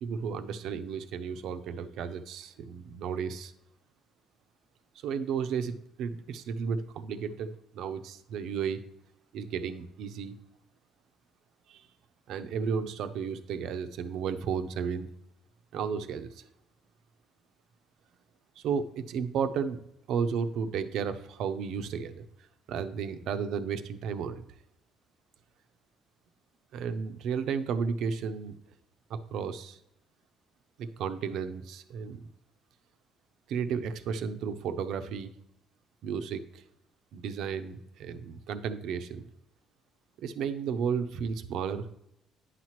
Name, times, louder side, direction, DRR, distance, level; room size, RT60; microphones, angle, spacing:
voice 1, 0.0-3.5 5.0-8.8 9.3-10.4 11.7-11.9 12.3-15.1 15.7-16.4 18.6-19.8 20.1-22.2 22.7-24.4 26.7-28.5 29.1-29.8 30.8-32.2 33.5-35.3 36.0-36.6 37.1-39.2 40.2-41.9, right 6 dB, 65° right, 10 dB, 0.6 m, -33 dB
9.7 x 5.8 x 3.1 m, 0.80 s
cardioid pair, 170°, 0 cm